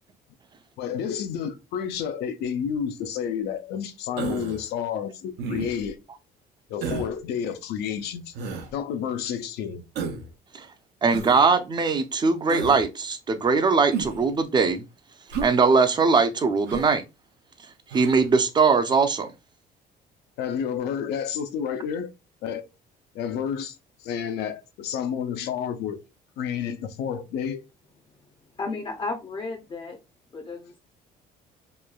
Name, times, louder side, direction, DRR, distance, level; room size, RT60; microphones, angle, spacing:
voice 1, 0.8-6.0 6.7-8.3 8.7-9.8 20.4-22.1 22.4-22.7 23.1-23.7 24.0-26.0 26.4-27.6, left 8 dB, 80° left, 0.5 m, -30 dB
Human voice, 4.2-4.6 5.4-5.9 6.8-7.1 8.3-8.7 9.9-10.3 11.1-11.4 12.5-12.8 13.9-14.3 15.3-15.5 16.7-17.0 17.9-18.2, right 5 dB, 80° right, 0.6 m, -32 dB
voice 2, 11.0-14.8 15.4-17.0 17.9-19.3, right 4 dB, 25° right, 0.5 m, -21 dB
voice 3, 28.6-30.0 30.3-30.8, left 3 dB, 30° left, 0.6 m, -33 dB
3.1 x 2.1 x 2.3 m
cardioid pair, 110°, 17 cm